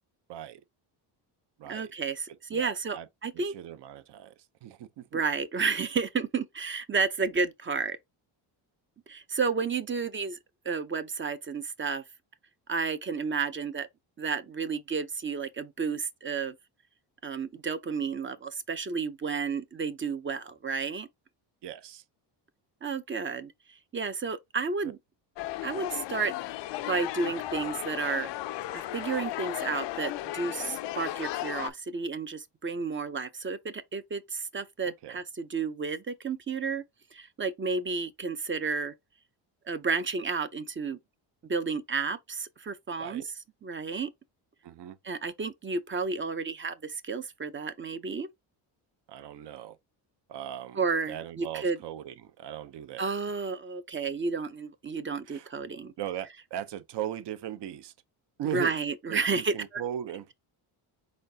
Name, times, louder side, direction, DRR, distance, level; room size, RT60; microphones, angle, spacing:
voice 1, 0.3-0.6 1.6-1.9 2.5-3.1 3.3-5.2 21.6-22.0 34.8-35.2 43.0-43.2 44.6-45.0 49.1-49.8 50.3-53.1 55.3-55.5 56.0-57.9 58.4-58.7 59.1-60.3, right 10 dB, 55° right, 0.7 m, -38 dB
voice 2, 1.7-3.5 5.1-8.0 9.1-10.4 10.6-12.0 12.7-13.9 14.2-16.6 17.2-21.1 22.8-23.5 23.9-25.0 25.6-26.3 26.9-28.3 28.7-36.8 37.1-38.9 39.7-41.0 41.5-43.2 43.6-44.1 45.0-48.3 50.8-51.8 53.0-55.9 58.5-59.8, right 4 dB, 25° right, 0.5 m, -31 dB
sound 1, 25.4-31.7, left 14 dB, 60° left, 0.5 m, -35 dB
4.3 x 3.2 x 2.7 m
cardioid pair, 80°, 49 cm